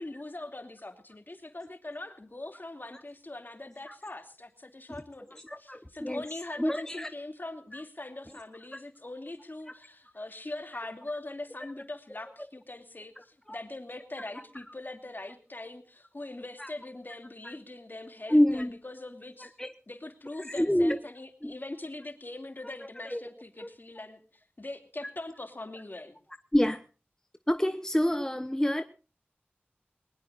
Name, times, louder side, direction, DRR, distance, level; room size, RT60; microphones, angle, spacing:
voice 1, 0.0-19.5 19.9-26.2, left 2 dB, 50° left, 2.7 m, -42 dB
voice 2, 5.4-6.2 6.5-7.1 7.7-7.8 11.6-11.7 13.2-13.6 16.6-16.7 17.4-17.5 18.3-18.7 19.6-19.7 20.5-21.0 21.4-21.5 23.0-23.2 23.6-23.7 26.5-26.8 27.5-28.8, left 1 dB, 15° left, 1.1 m, -27 dB
22.0 x 20.0 x 2.6 m
wide cardioid pair, 45°, 4 cm